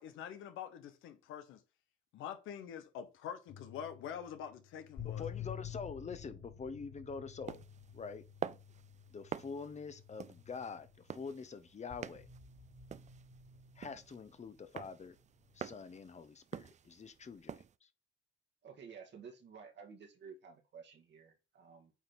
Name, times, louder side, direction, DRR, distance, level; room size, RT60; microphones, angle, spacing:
voice 1, 0.0-1.6 2.1-5.2, left 9 dB, 90° left, 1.2 m, -45 dB
sound 1, 3.5-11.4 11.9-14.6 15.4-15.6, left 8 dB, 55° left, 3.9 m, -50 dB
voice 2, 5.0-7.6 7.9-8.2 9.1-12.3 13.8-15.2 15.5-17.9, left 5 dB, 35° left, 1.0 m, -45 dB
sound 2, 7.5-17.7, right 8 dB, 35° right, 0.4 m, -48 dB
voice 3, 18.6-21.9, right 6 dB, 65° right, 1.8 m, -53 dB
8.8 x 3.3 x 4.3 m
cardioid pair, 90°, 20 cm